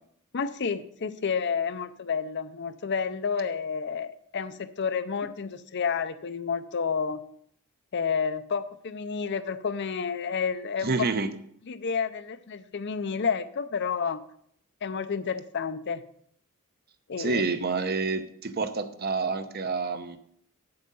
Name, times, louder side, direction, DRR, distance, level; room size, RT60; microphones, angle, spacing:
voice 1, 0.3-7.2 7.9-10.9 11.7-14.2 14.8-16.0 17.1-17.4, left 6 dB, 50° left, 12 dB, 0.5 m, -30 dB
voice 2, 10.8-11.3 17.2-20.2, right 4 dB, 45° right, 10 dB, 0.7 m, -28 dB
8.5 x 7.8 x 5.4 m, 0.67 s
head